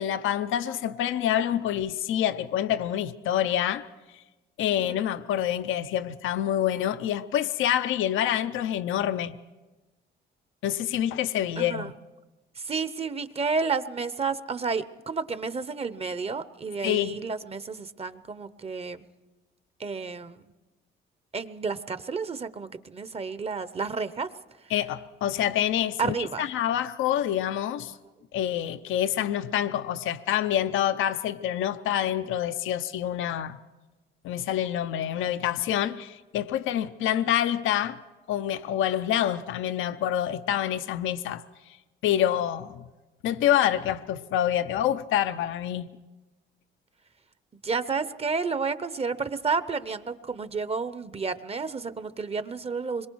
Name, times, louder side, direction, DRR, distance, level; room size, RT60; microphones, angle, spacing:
voice 1, 0.0-3.9 4.6-9.4 10.6-11.9 16.8-17.2 24.7-27.9 28.3-33.6 34.2-38.0 38.3-41.4 42.0-42.8 43.2-45.9, left 11 dB, 85° left, 0.7 m, -27 dB
voice 2, 11.6-11.9 12.6-19.0 19.8-20.4 21.3-24.3 26.0-26.5 47.6-53.1, right 5 dB, 30° right, 0.8 m, -31 dB
25.5 x 22.0 x 4.7 m
cardioid pair, 90°, 20 cm